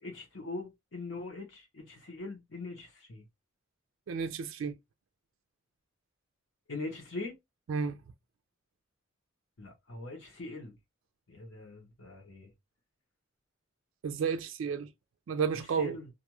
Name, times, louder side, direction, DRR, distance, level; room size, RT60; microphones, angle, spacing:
voice 1, 0.0-3.2 6.7-7.4 9.6-10.8 11.3-12.5 15.8-16.0, left 2 dB, 65° left, 1.0 m, -42 dB
voice 2, 4.1-4.8 7.7-8.0 14.0-14.9 15.3-16.0, right 6 dB, 75° right, 0.3 m, -32 dB
2.5 x 2.3 x 2.9 m
head